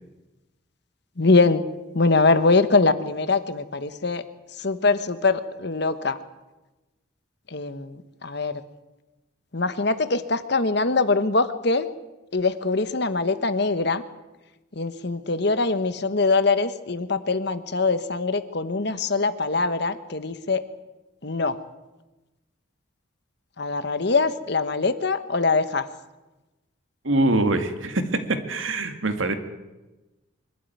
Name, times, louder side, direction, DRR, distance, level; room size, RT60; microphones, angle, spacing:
voice 1, 1.2-1.6 1.9-4.2 4.6-6.2 7.5-8.5 9.5-11.9 12.3-14.0 14.8-20.6 21.2-21.5 23.6-25.8, left 3 dB, 55° left, 12 dB, 1.2 m, -23 dB
voice 2, 27.0-28.0 28.3-29.3, right 2 dB, 80° right, 7 dB, 2.1 m, -23 dB
24.0 x 12.5 x 9.3 m, 1.1 s
head